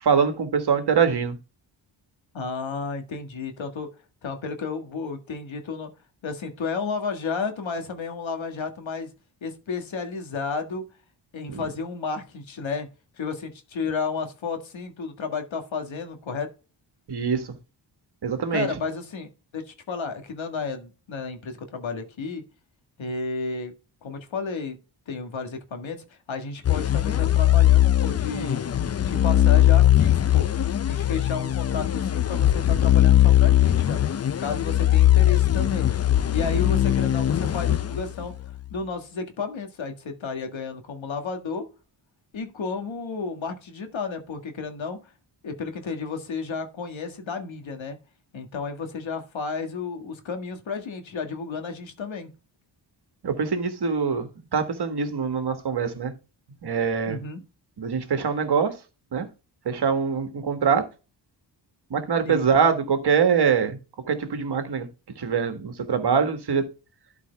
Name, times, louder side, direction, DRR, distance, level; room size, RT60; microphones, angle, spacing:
voice 1, 0.0-1.4 11.5-11.6 17.1-17.5 18.2-18.7 53.2-56.1 56.6-57.2 57.8-58.7 59.1-59.3 59.7-60.8 61.9-63.8 64.1-64.9 65.2-66.6, right 6 dB, 60° right, 1.6 m, -23 dB
voice 2, 2.3-3.9 4.2-5.9 6.2-9.1 9.4-10.8 11.3-12.9 13.2-16.5 18.5-22.4 23.0-23.7 24.0-24.8 25.1-28.7 29.1-30.5 30.9-34.0 34.4-35.9 36.3-38.3 38.7-41.7 42.3-45.0 45.4-48.0 48.3-52.3 57.1-57.4 62.2-62.5, left 4 dB, 85° left, 1.9 m, -32 dB
sound 1, 26.6-38.5, left 12 dB, 35° left, 0.4 m, -20 dB
12.0 x 4.8 x 3.4 m
wide cardioid pair, 120°, 45 cm